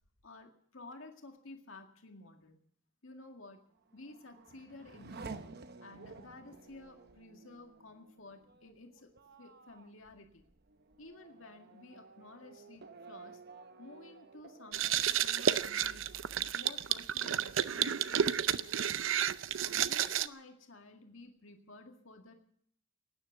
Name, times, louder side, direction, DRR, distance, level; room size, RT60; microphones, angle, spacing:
voice 1, 0.2-2.6 3.0-3.6 3.9-5.3 5.8-10.5 11.0-13.4 13.8-16.1 16.5-19.0 19.5-22.3, left 2 dB, 85° left, 4 dB, 2.0 m, -53 dB
Race car auto racing / Accelerating revving vroom, 3.7-17.0 17.4-18.1, right 4 dB, 55° right, 0.9 m, -53 dB
sound 1, 14.7-20.3, right 9 dB, 75° right, 0.6 m, -31 dB
18.0 x 9.9 x 8.0 m, 0.66 s
head